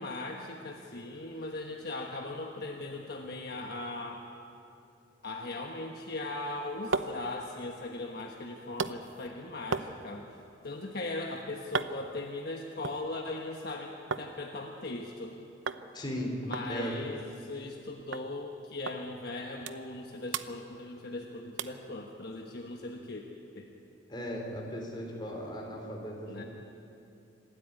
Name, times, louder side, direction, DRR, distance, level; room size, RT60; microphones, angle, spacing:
voice 1, 0.0-4.2 5.2-10.3 10.6-15.4 16.4-23.2 23.5-23.7 26.3-26.4, left 2 dB, 55° left, 1 dB, 1.3 m, -39 dB
sound 1, 6.4-14.3 14.6-15.3 15.7-15.9 16.1-16.2 16.5-17.8 18.1-18.3 18.9-19.0 19.4-20.0 20.3-21.2 21.6-21.9 22.4-22.5, right 4 dB, 75° right, 0.8 m, -38 dB
voice 2, 15.9-16.4 16.7-16.9 24.1-26.4, equal, 25° left, 0 dB, 3.9 m, -37 dB
26.5 x 13.0 x 9.6 m, 2.7 s
head